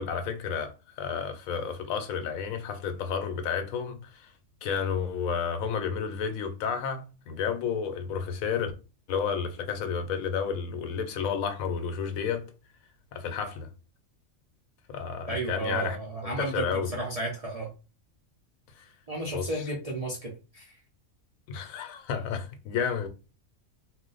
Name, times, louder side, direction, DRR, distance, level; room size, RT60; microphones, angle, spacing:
voice 1, 0.0-4.3 4.6-8.7 9.1-12.4 13.1-13.7 14.9-16.0 16.4-16.9 18.8-18.9 19.3-19.5 21.5-23.1, left 6 dB, 80° left, 1.0 m, -31 dB
voice 2, 15.3-17.7 19.1-20.8, right 2 dB, 45° right, 0.4 m, -33 dB
2.5 x 2.1 x 3.8 m
omnidirectional pair, 1.4 m